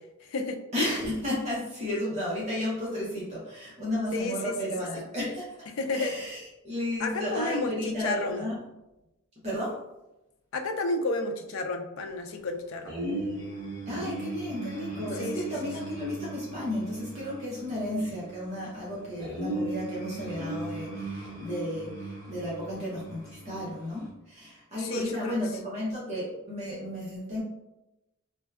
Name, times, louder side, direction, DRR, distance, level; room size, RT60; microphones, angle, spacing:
voice 1, 0.2-0.6 4.1-4.5 5.8-6.1 7.0-8.4 10.5-13.0 15.2-15.4 24.8-25.3, left 3 dB, 70° left, 5 dB, 0.4 m, -31 dB
voice 2, 0.7-8.7 9.4-9.8 13.9-27.4, left 1 dB, 30° right, -6 dB, 0.7 m, -33 dB
sound 1, 12.9-24.1, right 2 dB, 20° left, 1.0 m, -37 dB
4.3 x 2.2 x 2.3 m, 0.95 s
head